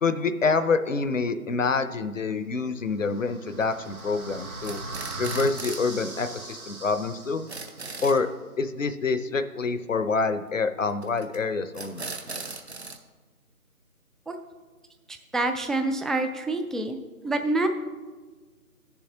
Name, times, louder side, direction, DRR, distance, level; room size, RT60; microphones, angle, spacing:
voice 1, 0.0-4.8 5.2-7.5 8.0-8.3 8.6-12.0, left 4 dB, 55° left, 11 dB, 0.7 m, -26 dB
sound 1, 2.8-7.9, right 2 dB, 70° right, 1.7 m, -39 dB
sound 2, 3.6-4.0 4.4-5.9 6.2-6.3 6.5-6.6 6.9-7.0 7.2-8.2 11.0-11.4 11.7-13.0, right 3 dB, 45° right, 0.7 m, -38 dB
voice 2, 15.3-17.0 17.2-17.7, right 2 dB, ahead, 6 dB, 0.3 m, -26 dB
16.5 x 7.1 x 2.7 m, 1.4 s
figure-of-eight pair, 165°, 45 cm